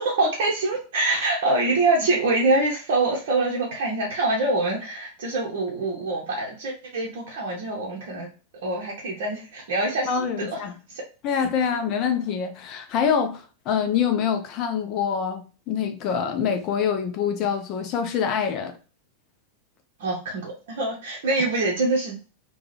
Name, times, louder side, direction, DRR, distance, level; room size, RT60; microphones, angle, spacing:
voice 1, 0.0-8.3 8.6-10.1 10.4-10.6 20.0-22.2, right 2 dB, 55° right, 0.7 m, -25 dB
voice 2, 10.1-10.7 11.2-18.7, left 7 dB, 40° left, 0.6 m, -25 dB
2.8 x 2.4 x 4.0 m
figure-of-eight pair, 90°, 0 cm